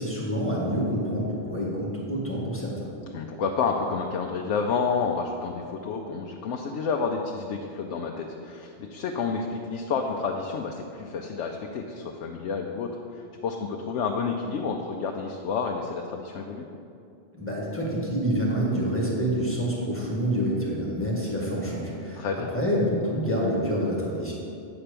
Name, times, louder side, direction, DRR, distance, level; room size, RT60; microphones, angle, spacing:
voice 1, 0.0-2.9 17.4-24.3, equal, 10° left, -5 dB, 1.7 m, -27 dB
voice 2, 3.1-16.7 22.2-22.5, left 5 dB, 85° left, 2 dB, 0.9 m, -30 dB
8.8 x 4.4 x 6.8 m, 2.6 s
omnidirectional pair, 1.2 m